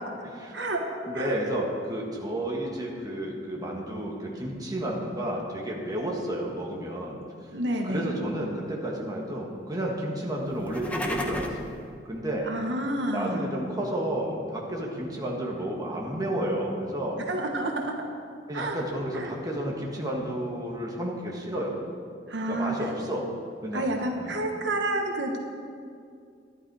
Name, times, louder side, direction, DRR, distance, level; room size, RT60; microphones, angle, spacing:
voice 1, 0.5-1.4 7.5-8.1 12.5-13.5 17.3-17.9 18.5-18.8 19.1-19.3 22.3-22.8 23.7-25.4, right 1 dB, 75° right, 2 dB, 1.2 m, -29 dB
voice 2, 1.1-7.5 7.8-11.7 12.1-12.5 13.1-17.2 18.5-21.8 22.5-23.3 23.6-23.9 24.1-24.4, right 1 dB, 20° right, -2 dB, 1.6 m, -31 dB
sound 1, 10.5-11.7, left 1 dB, 10° left, 0.9 m, -32 dB
11.5 x 11.0 x 4.8 m, 2.3 s
head